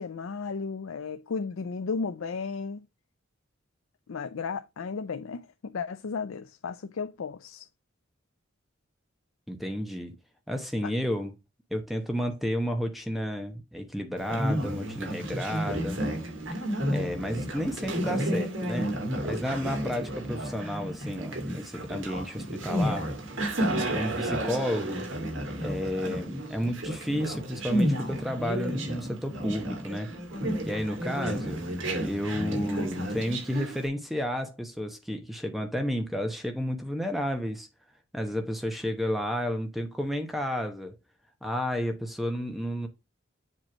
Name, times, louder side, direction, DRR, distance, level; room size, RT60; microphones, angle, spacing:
voice 1, 0.0-2.8 4.1-7.7 10.8-10.9, left 5 dB, 80° left, 0.5 m, -34 dB
voice 2, 9.5-10.1 10.5-11.3 11.7-16.0 16.9-18.9 19.2-23.1 23.7-25.1 25.6-30.1 30.6-31.7 32.0-37.7 38.1-40.9 41.4-42.9, equal, ahead, 0.9 m, -31 dB
Conversation, 14.2-33.9, right 1 dB, 65° right, 2.4 m, -31 dB
7.6 x 3.1 x 6.1 m
head